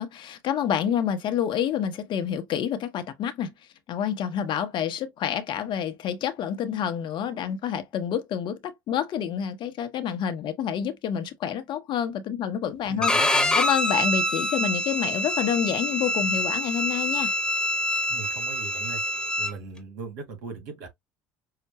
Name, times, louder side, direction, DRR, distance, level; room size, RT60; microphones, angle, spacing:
voice 1, 0.0-3.5 3.9-13.1 13.6-17.3, left 9 dB, 55° left, 0.9 m, -28 dB
voice 2, 12.9-13.6 18.1-19.0 19.4-20.9, right 4 dB, 75° right, 1.7 m, -38 dB
Bowed string instrument, 13.0-19.5, left 1 dB, 10° left, 1.1 m, -26 dB
5.8 x 2.1 x 2.9 m
hypercardioid pair, 65°, 10 cm